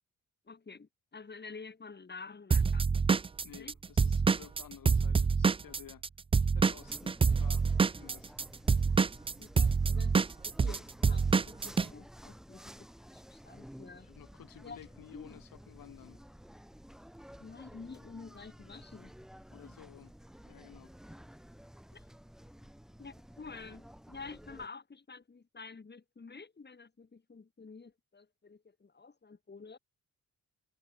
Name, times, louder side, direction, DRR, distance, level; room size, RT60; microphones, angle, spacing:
voice 1, 0.5-2.9 3.6-3.7 9.4-12.7 13.1-14.1 14.6-14.8 15.1-15.4 17.4-19.1 19.6-19.8 21.9-22.0 23.0-29.8, left 4 dB, 30° left, 5.0 m, -49 dB
Drum kit / Drum, 2.5-6.1 6.3-11.9, right 5 dB, 20° right, 0.3 m, -26 dB
voice 2, 3.4-6.0 6.5-7.7 7.9-8.5 14.0-16.2 19.5-20.1 20.4-20.9, left 11 dB, 80° left, 3.7 m, -54 dB
sound 1, 6.8-24.7, equal, ahead, 1.7 m, -53 dB
cardioid pair, 95°, 33 cm